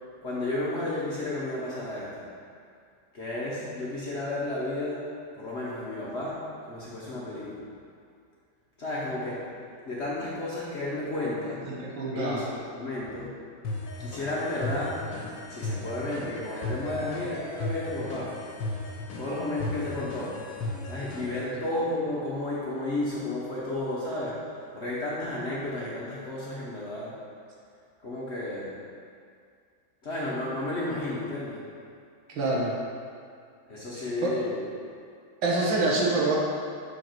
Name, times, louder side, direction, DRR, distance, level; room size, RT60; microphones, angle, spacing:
voice 1, 0.2-2.2 3.1-5.1 5.3-7.6 8.8-9.5 9.9-11.7 12.1-13.3 14.0-15.1 15.5-18.4 19.2-20.4 20.8-24.4 24.7-27.1 28.0-28.7 30.0-31.6 33.7-34.6, left 2 dB, 45° left, -7 dB, 1.0 m, -32 dB
voice 2, 11.7-12.4 16.9-17.0 32.3-32.7 34.2-34.3 35.4-36.4, right 2 dB, 75° right, -3 dB, 1.9 m, -26 dB
sound 1, 13.6-21.5, left 2 dB, 75° left, 1.6 m, -36 dB
6.7 x 5.0 x 4.5 m, 2.2 s
omnidirectional pair, 2.1 m